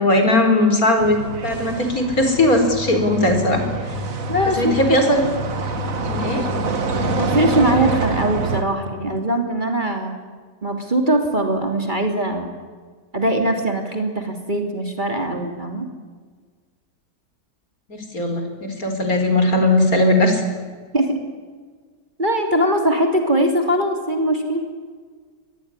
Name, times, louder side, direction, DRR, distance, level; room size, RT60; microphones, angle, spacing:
voice 1, 0.0-3.6 4.6-5.2 6.1-6.5 17.9-20.4, left 1 dB, 55° left, 6 dB, 4.8 m, -18 dB
sound 1, 1.0-8.6, right 3 dB, 55° right, 2.1 m, -26 dB
voice 2, 4.3-5.0 7.0-10.2 10.6-12.5 13.1-15.9 20.9-21.2 22.2-24.7, right 1 dB, 25° right, 4 dB, 3.3 m, -21 dB
24.0 x 20.5 x 10.0 m, 1.5 s
omnidirectional pair, 1.8 m